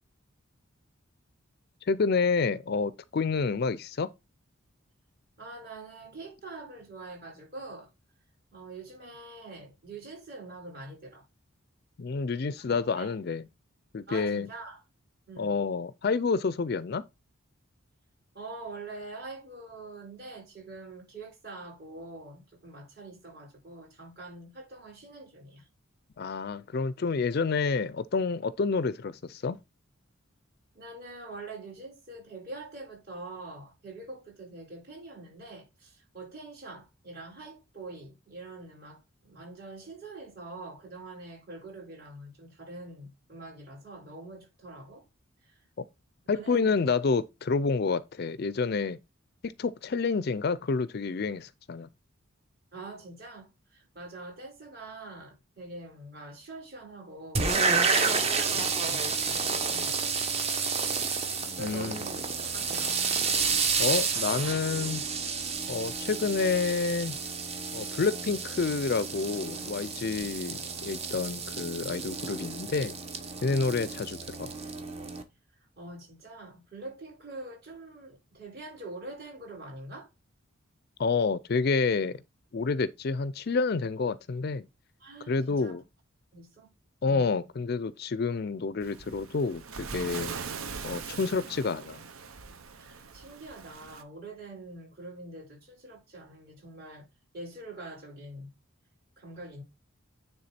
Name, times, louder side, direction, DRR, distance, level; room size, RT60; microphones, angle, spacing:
voice 1, 1.9-4.1 12.0-13.4 13.9-14.5 15.4-17.0 26.2-29.6 45.8-45.9 46.3-49.0 49.4-51.9 61.6-62.0 63.8-65.0 65.7-67.2 67.7-73.0 73.4-74.5 81.0-82.2 82.5-84.7 85.3-85.8 87.0-90.3 90.8-92.0, left 4 dB, 50° left, 0.4 m, -29 dB
voice 2, 5.4-7.9 8.5-11.2 12.7-13.1 14.1-14.8 15.3-15.5 18.3-25.7 30.7-45.0 45.4-45.6 46.3-46.8 52.7-57.5 58.0-60.2 61.6-63.0 75.8-80.1 85.0-85.8 86.3-86.7 92.7-97.1 97.3-98.5 99.2-99.6, right 2 dB, 45° right, 4.6 m, -44 dB
sound 1, 57.3-75.2, right 5 dB, 30° right, 0.9 m, -30 dB
Waves surf, 88.8-94.0, right 5 dB, 80° right, 0.9 m, -41 dB
9.6 x 3.5 x 4.2 m
head